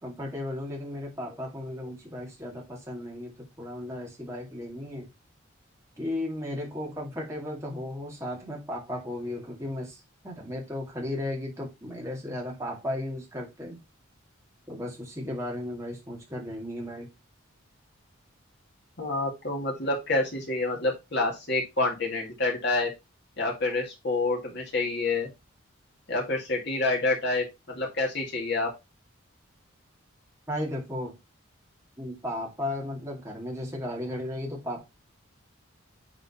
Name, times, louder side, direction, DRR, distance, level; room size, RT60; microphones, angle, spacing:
voice 1, 0.0-5.1 6.0-13.8 14.7-17.1 30.5-31.2 32.0-34.8, left 1 dB, 15° right, -2 dB, 2.2 m, -35 dB
voice 2, 19.0-22.9 23.4-25.3 26.1-28.7, left 2 dB, 55° left, 0 dB, 2.2 m, -28 dB
9.1 x 4.1 x 4.2 m, 0.24 s
head